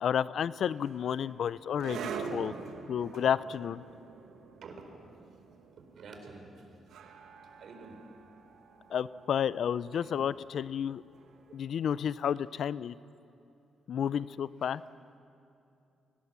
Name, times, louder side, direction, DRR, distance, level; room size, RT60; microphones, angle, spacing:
voice 1, 0.0-2.5 2.9-3.8 8.9-11.0 11.5-12.9 13.9-14.8, left 8 dB, 70° left, 18 dB, 0.5 m, -31 dB
sound 1, 0.6-11.7, right 5 dB, 85° right, 1.8 m, -45 dB
voice 2, 5.9-6.5 7.6-8.0, right 4 dB, 65° right, 4 dB, 4.2 m, -47 dB
24.5 x 18.5 x 7.4 m, 2.7 s
cardioid pair, 85°, 0 cm